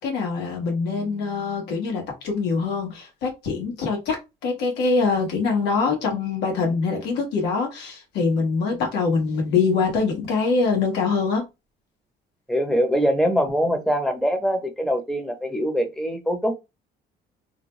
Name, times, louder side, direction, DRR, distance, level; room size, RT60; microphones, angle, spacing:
voice 1, 0.0-11.4, left 4 dB, 85° left, 1.2 m, -24 dB
voice 2, 12.5-16.5, equal, ahead, 0.8 m, -23 dB
2.7 x 2.1 x 3.0 m
cardioid pair, 110°, 17 cm